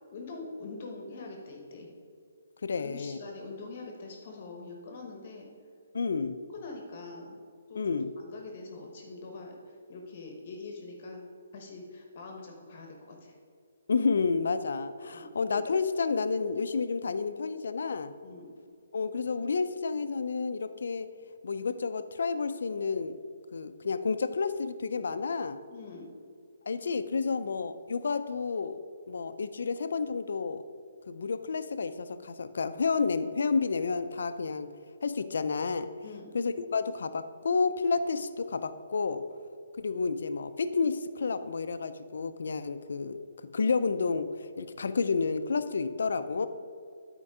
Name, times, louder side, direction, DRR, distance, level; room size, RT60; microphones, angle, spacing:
voice 1, 0.1-1.9 2.7-5.5 6.5-7.4 7.7-7.9 8.2-11.2 11.5-13.3 15.1-15.3 18.2-18.5 25.7-26.1 36.0-36.3, left 3 dB, 35° left, 2 dB, 1.0 m, -44 dB
voice 2, 2.6-3.2 5.9-6.4 7.8-8.1 13.9-18.1 18.9-21.1 21.4-23.2 23.5-25.6 26.7-28.8 29.1-30.6 31.1-34.7 35.0-35.9 36.3-39.2 39.8-43.2 43.5-46.5, left 4 dB, 65° left, 11 dB, 0.4 m, -30 dB
9.8 x 4.5 x 4.9 m, 2.3 s
hypercardioid pair, 175°, 0 cm